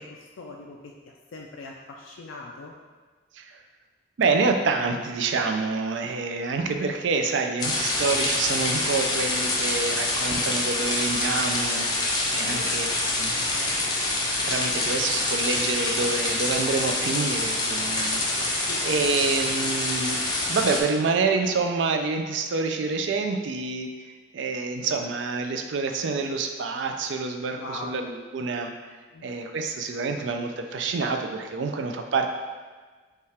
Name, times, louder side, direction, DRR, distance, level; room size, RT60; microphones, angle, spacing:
voice 1, 0.0-2.7 12.4-12.7 13.3-13.8 18.7-18.8 27.5-28.0 29.1-29.4, left 2 dB, 85° left, -1 dB, 0.4 m, -41 dB
voice 2, 4.2-12.9 13.2-13.6 14.4-28.7 29.2-32.3, right 4 dB, 70° right, 5 dB, 0.4 m, -27 dB
sound 1, 7.6-20.8, left 2 dB, 20° left, 0.5 m, -26 dB
5.5 x 2.4 x 3.3 m, 1.4 s
head